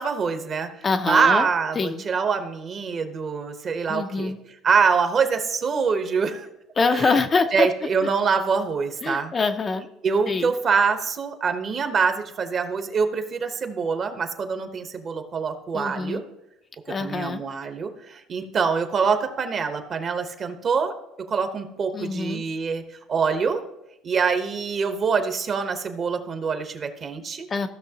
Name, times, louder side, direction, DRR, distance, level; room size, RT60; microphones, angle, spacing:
voice 1, 0.0-0.7 1.1-4.3 4.6-6.5 6.9-7.2 7.5-9.4 10.0-16.2 17.0-20.9 21.3-22.8 23.1-23.6 24.0-27.5, right 5 dB, 35° right, 7 dB, 0.9 m, -24 dB
voice 2, 0.8-1.5 1.8-2.0 3.9-4.4 6.8-7.7 9.0-9.9 10.3-10.5 15.7-16.2 16.9-17.4 21.9-22.4 27.5-27.7, left 4 dB, 25° left, 8 dB, 0.5 m, -24 dB
15.0 x 6.2 x 2.8 m, 0.86 s
cardioid pair, 125°, 0 cm